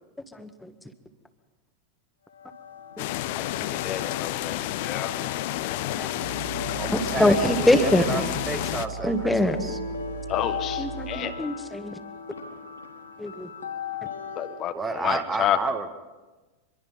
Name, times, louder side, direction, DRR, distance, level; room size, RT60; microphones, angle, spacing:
voice 1, 0.3-0.7 3.0-3.1 3.7-4.1 5.2-5.3 5.9-6.1 7.2-8.1 9.0-9.6 10.8-11.9 13.2-13.5, left 1 dB, 5° left, 8 dB, 1.9 m, -24 dB
sound 1, 2.3-14.7, left 6 dB, 70° left, 3.1 m, -38 dB
sound 2, 3.0-8.9, left 15 dB, 50° left, 0.9 m, -30 dB
voice 2, 3.5-5.2 10.3-11.3 14.4-15.6, left 11 dB, 35° left, 8 dB, 1.5 m, -30 dB
sound 3, 6.2-11.2, right 8 dB, 65° right, 2.5 m, -38 dB
voice 3, 6.8-9.8 14.7-15.9, right 3 dB, 15° right, 7 dB, 1.7 m, -31 dB
25.5 x 22.0 x 5.6 m, 1.2 s
figure-of-eight pair, 90°, 0 cm